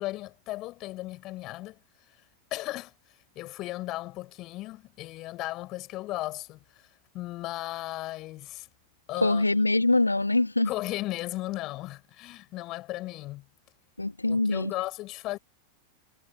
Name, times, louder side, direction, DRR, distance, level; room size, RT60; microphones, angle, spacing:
voice 1, 0.0-1.8 2.1-2.2 2.5-2.9 3.4-6.9 7.1-8.7 9.1-9.6 10.7-13.4 14.3-15.4, left 18 dB, 40° left, 5.4 m, -36 dB
voice 2, 9.2-10.7 14.0-14.7, left 2 dB, 85° left, 1.6 m, -23 dB
figure-of-eight pair, 90°, 0 cm